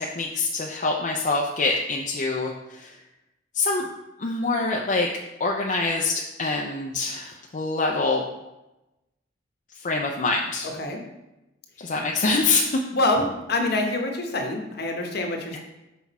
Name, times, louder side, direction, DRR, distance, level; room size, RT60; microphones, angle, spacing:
voice 1, 0.0-3.0 3.5-3.9 4.2-5.1 5.4-8.2 9.8-10.7 11.8-12.8, left 3 dB, 40° left, 0 dB, 0.5 m, -25 dB
voice 2, 10.6-11.0 12.9-15.6, left 2 dB, 60° left, 2 dB, 1.0 m, -26 dB
5.9 x 4.6 x 4.1 m, 0.97 s
head